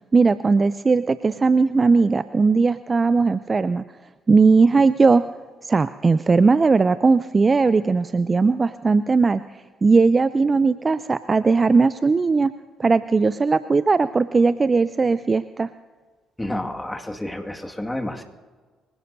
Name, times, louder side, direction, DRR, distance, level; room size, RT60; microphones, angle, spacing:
voice 1, 0.1-3.8 4.3-5.3 5.6-9.4 9.8-12.5 12.8-15.7, right 4 dB, 35° right, 14 dB, 0.4 m, -18 dB
voice 2, 16.4-18.2, left 1 dB, 10° left, 2 dB, 2.0 m, -30 dB
25.0 x 17.0 x 2.7 m, 1.4 s
hypercardioid pair, 50°, 0 cm